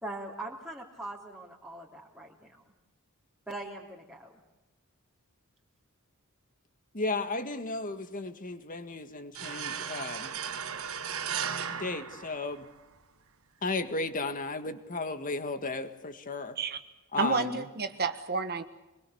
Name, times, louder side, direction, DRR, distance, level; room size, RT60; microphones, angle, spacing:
voice 1, 0.0-2.6 3.5-4.3, right 2 dB, 5° right, -4 dB, 3.1 m, -41 dB
voice 2, 6.9-10.3 11.8-12.7 13.6-16.6 17.1-17.6, left 3 dB, 40° left, 9 dB, 1.9 m, -34 dB
sound 1, 9.3-12.9, right 7 dB, 70° right, 1.7 m, -36 dB
voice 3, 17.2-18.6, right 4 dB, 45° right, 8 dB, 1.4 m, -30 dB
26.0 x 21.5 x 7.1 m, 1.0 s
head